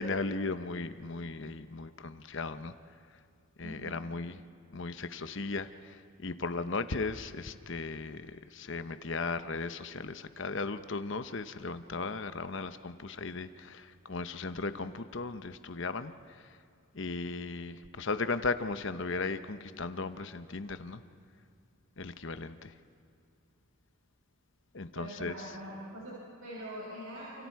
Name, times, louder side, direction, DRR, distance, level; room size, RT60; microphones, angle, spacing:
voice 1, 0.0-2.7 3.6-4.4 4.7-5.7 6.2-13.8 14.1-16.1 17.0-21.0 22.0-22.7 24.7-25.3, left 3 dB, 55° left, 11 dB, 0.9 m, -36 dB
voice 2, 3.6-4.0 24.9-27.5, right 1 dB, 75° right, -6 dB, 6.3 m, -43 dB
29.0 x 29.0 x 4.8 m, 2.5 s
head